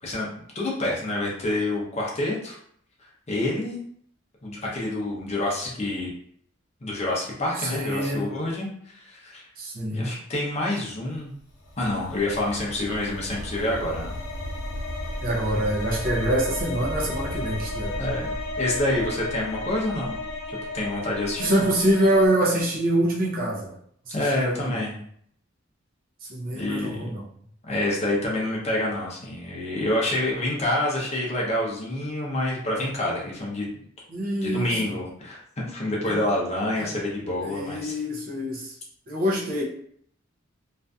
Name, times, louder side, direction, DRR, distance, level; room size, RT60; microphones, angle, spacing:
voice 1, 0.0-2.6 3.3-3.8 4.4-6.1 6.8-9.5 9.9-11.3 11.8-14.1 18.0-20.2 20.5-21.7 24.1-25.0 26.5-27.0 27.6-33.7 34.4-37.9, left 1 dB, 35° left, -3 dB, 0.6 m, -27 dB
voice 2, 7.6-8.3 9.6-10.1 15.2-18.0 21.4-23.7 24.1-24.7 26.2-27.3 34.1-34.9 36.1-36.2 36.8-36.9 37.5-38.7 39.1-39.6, right 1 dB, 45° right, -2 dB, 0.5 m, -25 dB
sound 1, 11.5-22.3, left 1 dB, 75° left, 0.8 m, -33 dB
2.5 x 2.4 x 2.2 m, 0.64 s
head